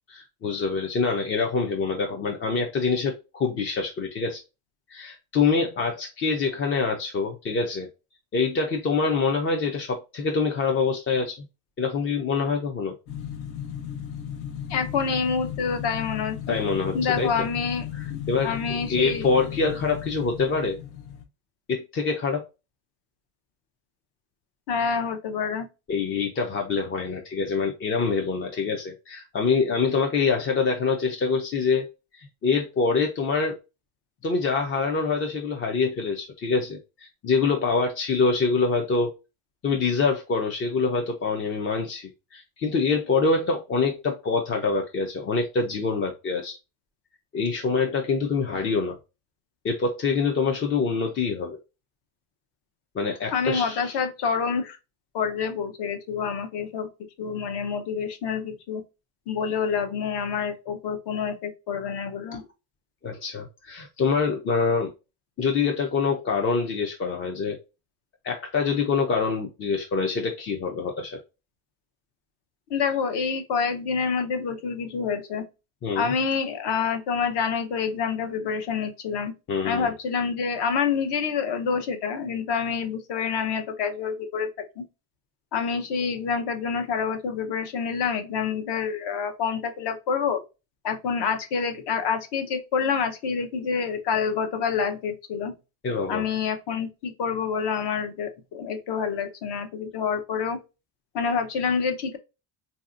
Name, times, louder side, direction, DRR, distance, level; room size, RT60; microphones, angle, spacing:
voice 1, 0.1-4.4 4.9-7.9 8.3-11.4 11.8-12.9 16.5-17.3 17.9-20.8 21.7-22.4 25.9-31.9 32.1-33.6 34.2-39.1 39.6-46.5 47.3-49.0 49.6-51.6 52.9-53.9 62.3-62.4 63.0-64.9 65.4-67.6 68.2-71.2 75.8-76.1 79.5-79.9 95.8-96.2, left 4 dB, 30° left, 0.4 m, -25 dB
sound 1, 13.1-21.2, left 9 dB, 80° left, 1.0 m, -35 dB
voice 2, 14.7-16.5 16.9-19.3 24.7-25.7 53.3-54.8 55.1-56.9 57.2-58.8 59.3-62.4 72.7-75.4 75.9-79.3 79.6-84.8 85.5-90.4 90.8-95.5 96.1-100.6 101.1-102.2, left 6 dB, 55° left, 0.8 m, -27 dB
3.3 x 2.7 x 2.4 m
cardioid pair, 130°, 49 cm